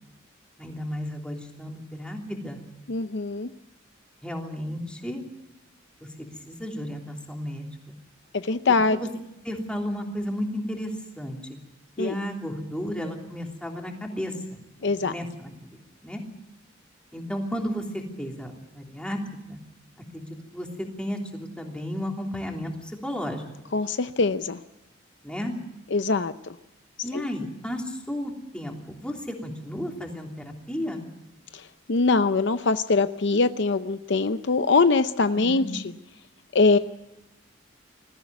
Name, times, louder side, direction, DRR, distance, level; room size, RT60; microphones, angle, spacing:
voice 1, 0.6-2.6 4.2-5.2 6.0-7.9 8.9-9.1 9.4-11.4 12.0-16.2 17.1-19.2 19.5-19.6 20.1-20.3 20.5-23.4 25.2-25.5 27.0-31.0 35.3-35.7, equal, 5° left, 1 dB, 3.2 m, -33 dB
voice 2, 2.9-3.5 8.3-9.0 12.0-12.1 14.8-15.1 23.7-24.6 25.9-26.3 27.1-27.2 31.5-35.8 36.5-36.8, left 3 dB, 65° left, 11 dB, 0.7 m, -23 dB
21.0 x 15.0 x 9.5 m, 0.95 s
head